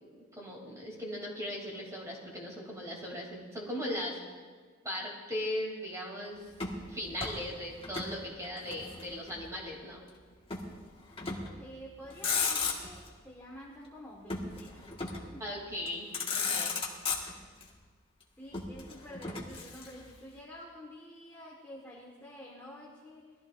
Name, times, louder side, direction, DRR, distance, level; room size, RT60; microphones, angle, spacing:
voice 1, 0.0-4.2 4.8-6.4 6.9-10.0 15.4-16.8, left 1 dB, 15° right, -2 dB, 3.1 m, -38 dB
Motor vehicle (road), 6.5-8.2 8.4-9.5 10.5-10.7 11.2-11.6 12.0-13.1 14.3-15.3 15.9-16.0 16.1-17.6 18.5-20.2, left 5 dB, 25° left, 1.7 m, -35 dB
voice 2, 11.5-15.4 18.4-23.3, equal, 10° left, -5 dB, 1.6 m, -49 dB
21.5 x 14.5 x 2.6 m, 1.5 s
head